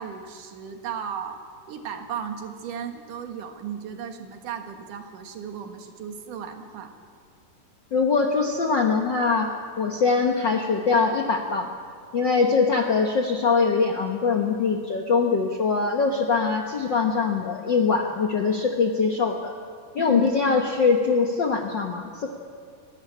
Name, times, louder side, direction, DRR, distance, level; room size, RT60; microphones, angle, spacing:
voice 1, 0.0-6.9 12.3-12.5 20.0-20.3, right 7 dB, 75° right, 5 dB, 3.1 m, -35 dB
voice 2, 7.9-11.7 12.1-19.5 19.9-22.3, left 4 dB, 60° left, 2 dB, 1.2 m, -22 dB
29.0 x 12.0 x 8.6 m, 2.1 s
omnidirectional pair, 3.8 m